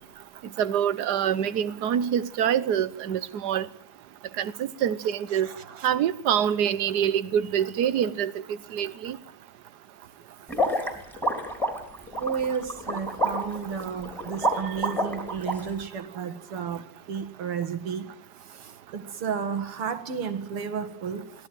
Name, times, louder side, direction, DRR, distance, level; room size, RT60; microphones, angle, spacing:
voice 1, 0.6-3.7 4.4-5.5 5.8-8.3 8.7-9.2 14.6-14.7, right 9 dB, 55° right, 1.4 m, -25 dB
voice 2, 5.3-5.9 12.2-16.8 17.1-18.1 18.6-21.2, right 6 dB, 80° right, 2.7 m, -32 dB
sound 1, 10.5-15.5, right 1 dB, ahead, 3.7 m, -28 dB
24.0 x 17.0 x 7.6 m
omnidirectional pair, 2.4 m